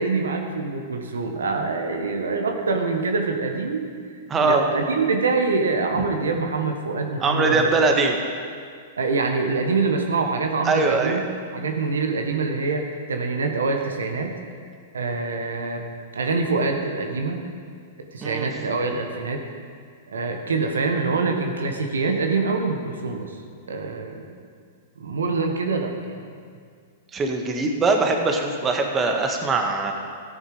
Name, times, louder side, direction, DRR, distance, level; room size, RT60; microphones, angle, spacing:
voice 1, 0.0-3.8 4.4-7.8 9.0-11.2 11.5-12.8 13.1-14.4 14.9-15.8 16.1-17.4 18.1-19.4 20.1-23.4 23.7-24.2 25.0-26.2, right 4 dB, 85° right, 4 dB, 1.3 m, -25 dB
voice 2, 4.3-4.6 7.2-8.2 10.6-11.2 18.2-18.5 27.1-29.9, right 3 dB, 25° right, 3 dB, 1.5 m, -21 dB
13.5 x 9.7 x 4.9 m, 2.1 s
hypercardioid pair, 115°, 0 cm